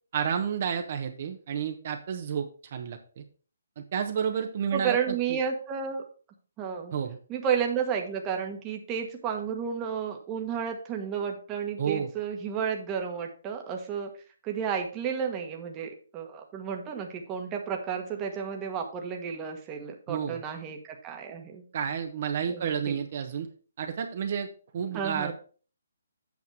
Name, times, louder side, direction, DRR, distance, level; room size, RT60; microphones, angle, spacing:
voice 1, 0.1-3.2 3.8-5.4 6.9-7.2 11.8-12.1 20.1-20.4 21.7-23.5 23.8-24.5 24.7-25.3, right 7 dB, 45° right, 5 dB, 1.1 m, -31 dB
voice 2, 4.7-6.0 6.6-6.9 7.3-14.1 14.4-21.6 22.5-23.0 24.9-25.3, right 7 dB, 20° right, 3 dB, 1.3 m, -32 dB
8.4 x 5.8 x 4.7 m, 0.39 s
hypercardioid pair, 155°, 0 cm